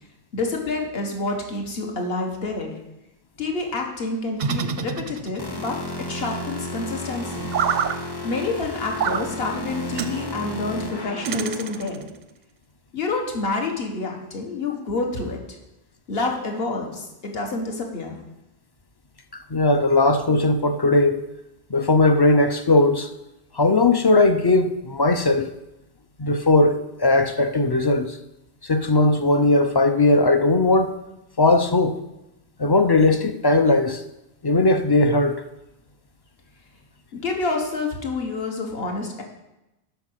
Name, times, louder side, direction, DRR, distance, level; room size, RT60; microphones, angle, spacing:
voice 1, 0.3-2.7 3.4-5.8 6.1-7.5 8.2-12.1 12.9-15.4 16.1-18.2 37.1-39.2, left 3 dB, 65° left, 1.6 m, -28 dB
sound 1, 4.4-5.6 7.5-8.0 9.0-9.3 10.0-10.2 11.2-12.1, right 7 dB, 55° right, 0.5 m, -26 dB
sound 2, 5.4-11.9, left 1 dB, 25° left, 0.8 m, -33 dB
voice 2, 19.5-21.2 21.7-23.1 23.6-25.5 26.2-28.2 28.6-31.0 31.4-32.0 32.6-34.0 34.4-35.4, left 2 dB, 40° left, 0.3 m, -18 dB
8.0 x 5.7 x 6.3 m
omnidirectional pair, 1.1 m